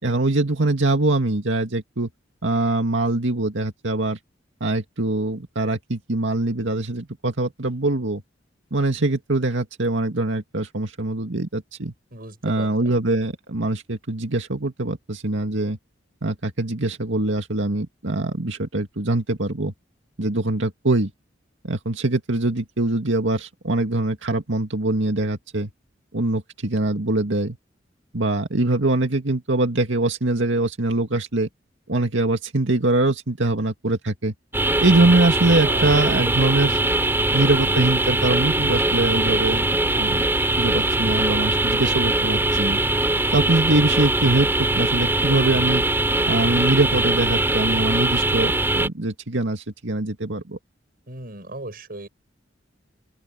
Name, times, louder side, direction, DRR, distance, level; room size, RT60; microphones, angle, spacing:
voice 1, 0.0-2.1 2.4-4.2 4.6-8.2 8.7-11.9 12.4-15.8 16.2-19.7 20.2-21.1 21.6-25.7 26.1-27.6 28.1-31.5 31.9-34.3 34.8-36.8 37.3-39.6 39.9-40.3 40.6-42.8 43.3-44.5 44.7-45.8 46.3-50.6, right 2 dB, 85° right, 2.1 m, -23 dB
voice 2, 12.1-12.9 35.6-36.1 51.1-52.1, right 2 dB, 50° right, 6.9 m, -36 dB
sound 1, 34.5-48.9, right 2 dB, 10° right, 4.3 m, -21 dB
open air
head